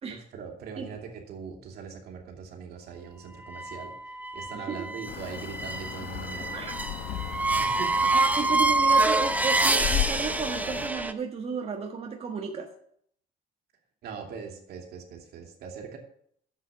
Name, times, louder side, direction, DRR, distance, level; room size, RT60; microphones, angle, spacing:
voice 1, 0.3-6.6 7.6-7.9 8.2-8.4 14.0-16.0, right 6 dB, 70° right, 2 dB, 2.7 m, -41 dB
sound 1, 3.4-11.1, right 2 dB, 10° right, 0.9 m, -26 dB
voice 2, 4.5-4.9 6.5-6.7 8.1-12.7, right 5 dB, 35° right, 2 dB, 1.4 m, -33 dB
sound 2, 5.1-10.9, left 12 dB, 75° left, 1.1 m, -36 dB
10.5 x 7.8 x 7.1 m, 0.66 s
cardioid pair, 110°, 17 cm